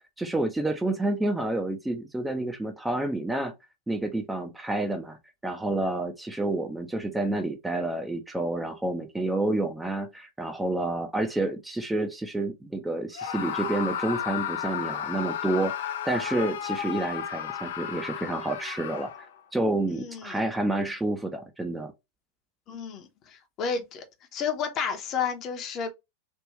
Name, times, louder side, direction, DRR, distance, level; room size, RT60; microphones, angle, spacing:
voice 1, 0.2-3.5 3.9-5.2 5.4-19.1 19.5-21.9, right 2 dB, 5° right, 0.6 m, -29 dB
Screaming, 13.1-19.4, left 9 dB, 60° left, 0.5 m, -33 dB
voice 2, 19.9-20.4 22.7-24.0 24.3-25.9, left 6 dB, 35° left, 0.9 m, -31 dB
3.5 x 2.5 x 3.1 m
figure-of-eight pair, 90°, 0 cm